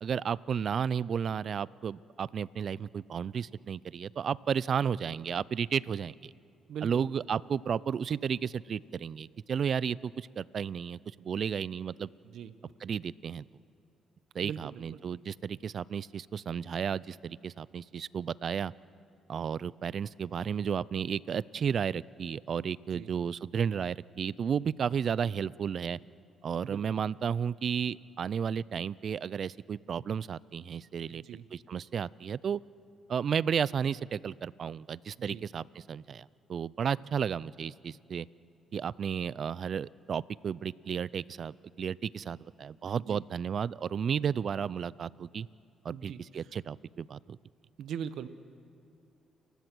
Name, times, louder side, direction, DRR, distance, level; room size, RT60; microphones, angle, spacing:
voice 1, 0.0-6.3 6.8-12.1 12.8-13.4 14.3-18.7 19.3-26.0 26.4-31.2 31.5-32.6 33.1-38.3 38.7-45.5 45.8-47.4, right 7 dB, 55° right, 22 dB, 0.4 m, -33 dB
voice 2, 6.7-7.0 12.2-12.5 14.4-14.8 22.9-23.1 26.6-27.0 31.1-31.5 35.3-35.4 43.0-43.2 45.9-46.5 47.8-48.3, right 8 dB, 75° right, 13 dB, 0.9 m, -41 dB
29.5 x 15.5 x 6.2 m, 2.5 s
cardioid pair, 90°, 0 cm